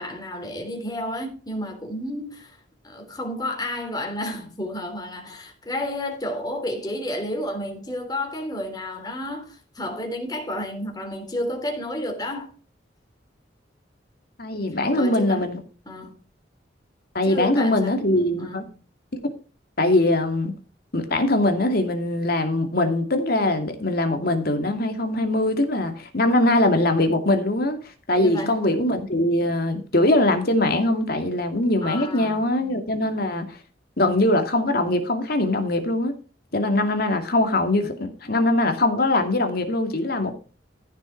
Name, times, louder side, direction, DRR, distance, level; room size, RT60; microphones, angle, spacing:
voice 1, 0.0-2.6 2.8-12.5 14.9-15.5 15.9-16.2 17.2-18.1 18.4-18.7 28.2-28.6 31.8-32.5, left 1 dB, 20° left, 3.4 m, -31 dB
voice 2, 14.4-15.6 17.1-18.6 19.8-20.6 20.9-27.8 28.1-33.6 34.0-36.1 36.5-40.3, left 1 dB, 55° left, 2.5 m, -22 dB
14.5 x 6.8 x 4.6 m
head